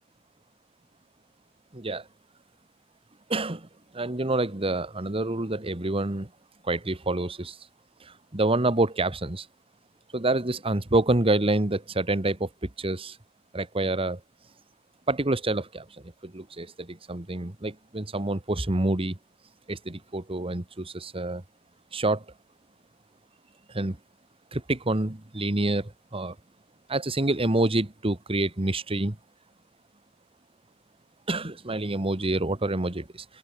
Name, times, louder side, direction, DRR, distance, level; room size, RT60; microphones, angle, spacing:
voice 1, 1.7-2.0 3.3-3.7 3.9-6.3 6.6-7.6 8.0-9.5 10.1-13.2 13.5-14.2 15.1-19.2 19.7-21.4 21.9-22.2 23.7-24.0 24.5-26.3 26.9-29.2 31.3-33.2, right 2 dB, 30° right, 1.5 m, -27 dB
open air
head